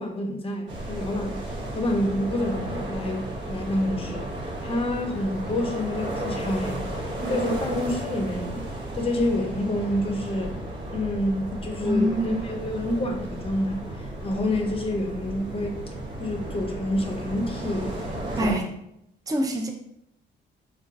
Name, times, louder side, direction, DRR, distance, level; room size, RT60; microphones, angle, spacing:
voice 1, 0.0-4.3 4.6-8.6 8.9-10.6 10.9-15.8 16.2-18.7, left 1 dB, 30° left, 3 dB, 0.6 m, -28 dB
sound 1, 0.7-18.5, right 1 dB, 65° right, 0.9 m, -34 dB
voice 2, 11.8-12.4 18.4-18.6 19.3-19.7, equal, 20° right, 2 dB, 0.5 m, -25 dB
3.6 x 2.3 x 2.6 m, 0.78 s
cardioid pair, 90°, 20 cm